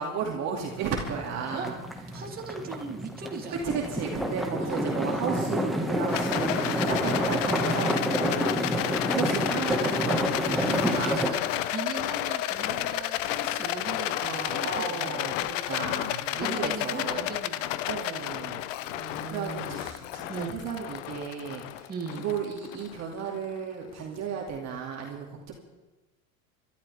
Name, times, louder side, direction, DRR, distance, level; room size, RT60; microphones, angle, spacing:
voice 1, 0.0-1.7 3.6-11.2 11.5-11.6 14.1-17.3 17.9-18.6 19.3-25.5, right 6 dB, 40° right, -1 dB, 2.6 m, -34 dB
sound 1, 0.7-11.3, equal, ahead, 1.7 m, -29 dB
voice 2, 2.1-3.7 4.6-4.9 8.8-9.2 10.5-15.2 16.1-17.8 18.8-19.8 20.3-20.5 21.9-22.2, right 4 dB, 20° right, -1 dB, 3.0 m, -39 dB
Rattle, 6.1-23.4, left 14 dB, 65° left, 0.9 m, -31 dB
29.5 x 12.5 x 3.5 m, 1.1 s
hypercardioid pair, 110°, 42 cm